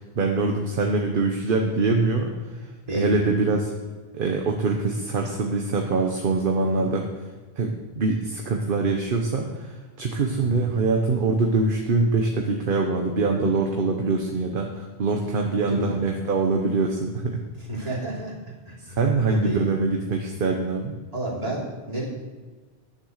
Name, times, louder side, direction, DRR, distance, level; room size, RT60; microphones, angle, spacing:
voice 1, 0.1-2.6 2.9-3.7 4.1-7.1 7.6-17.4 17.8-17.9 19.0-20.9, right 3 dB, 60° right, 2 dB, 1.1 m, -24 dB
voice 2, 2.9-3.3 6.6-6.9 10.4-10.6 13.2-13.4 15.6-16.2 17.7-18.3 18.7-19.0 19.3-19.7 21.1-22.1, right 1 dB, 35° right, -6 dB, 3.3 m, -31 dB
10.5 x 6.9 x 6.4 m, 1.3 s
omnidirectional pair, 1.1 m